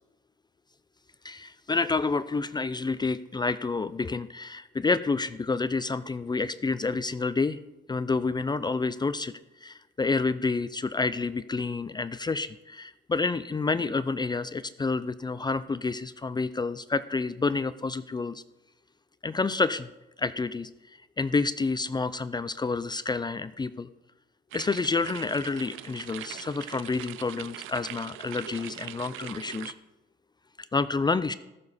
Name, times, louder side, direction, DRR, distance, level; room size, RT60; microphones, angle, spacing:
voice 1, 1.2-7.6 7.9-9.3 9.6-18.4 19.2-19.9 20.2-20.7 21.2-23.9 24.5-29.7 30.7-31.3, left 4 dB, 20° left, 14 dB, 0.4 m, -29 dB
sound 1, 24.5-29.7, right 13 dB, 90° right, 0.6 m, -42 dB
19.5 x 6.9 x 4.2 m, 0.98 s
cardioid pair, 90°, 20 cm